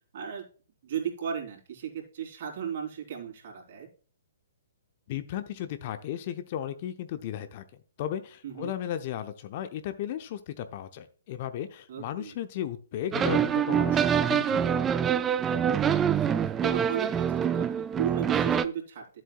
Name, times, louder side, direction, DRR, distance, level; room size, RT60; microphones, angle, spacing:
voice 1, 0.1-0.4 0.8-3.9 8.4-8.8 11.9-12.3 16.4-19.2, right 8 dB, 50° right, 0 dB, 3.7 m, -35 dB
voice 2, 5.1-7.6 8.0-14.8, left 10 dB, 40° left, 10 dB, 0.7 m, -35 dB
sound 1, 13.1-18.7, right 8 dB, 15° right, 0.4 m, -25 dB
12.0 x 7.5 x 2.4 m, 0.39 s
figure-of-eight pair, 120°, 0 cm